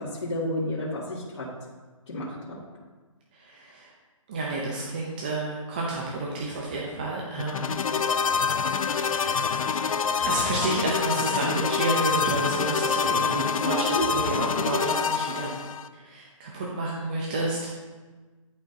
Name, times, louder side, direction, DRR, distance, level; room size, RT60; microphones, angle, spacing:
voice 1, 0.0-1.5 2.1-2.6 13.6-14.0, left 1 dB, 55° left, -10 dB, 2.0 m, -30 dB
voice 2, 3.3-3.9 4.3-7.8 8.7-9.4 10.2-15.5 15.9-17.7, right 2 dB, 15° right, -3 dB, 0.5 m, -30 dB
sound 1, 7.4-15.9, left 6 dB, 80° left, 0.5 m, -26 dB
11.0 x 4.2 x 2.6 m, 1.3 s
hypercardioid pair, 165°, 17 cm